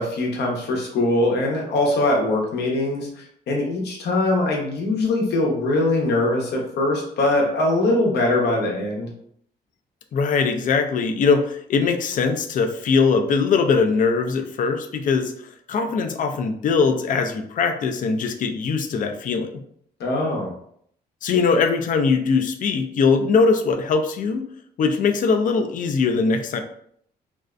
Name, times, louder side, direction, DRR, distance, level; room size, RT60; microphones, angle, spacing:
voice 1, 0.0-9.1 20.0-20.5, left 2 dB, 80° left, 0 dB, 0.8 m, -22 dB
voice 2, 10.1-15.3 15.7-19.6 21.2-24.4 24.8-26.6, left 5 dB, 50° left, 6 dB, 0.4 m, -21 dB
2.5 x 2.1 x 2.4 m, 0.67 s
cardioid pair, 105°, 17 cm